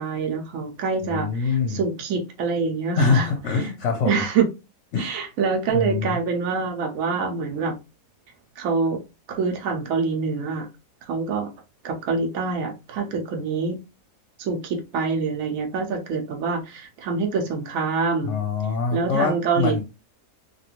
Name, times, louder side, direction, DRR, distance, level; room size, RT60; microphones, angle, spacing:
voice 1, 0.0-3.3 3.6-3.7 4.0-4.5 5.0-7.7 8.6-9.0 9.3-10.7 11.1-11.5 11.8-13.8 14.4-18.4 18.9-19.8, right 5 dB, 70° right, 1.0 m, -25 dB
voice 2, 1.0-1.8 3.0-4.2 4.9-5.3 5.7-6.2 18.2-19.8, left 5 dB, 65° left, 0.8 m, -24 dB
3.0 x 2.4 x 2.9 m
omnidirectional pair, 1.5 m